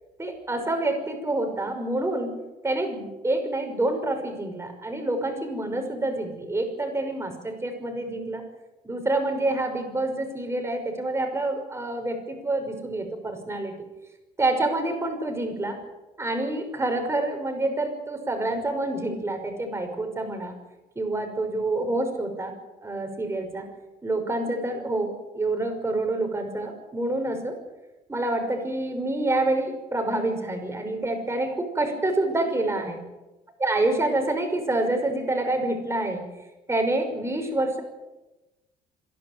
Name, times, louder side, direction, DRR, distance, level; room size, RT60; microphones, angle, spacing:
voice 1, 0.2-8.4 8.8-13.7 14.4-15.8 16.2-20.6 21.0-22.5 22.8-23.7 24.0-27.6 28.1-33.0 33.6-36.3 36.7-37.8, right 2 dB, 15° right, 4 dB, 5.7 m, -27 dB
27.5 x 11.5 x 9.6 m, 1.0 s
cardioid pair, 110°, 17 cm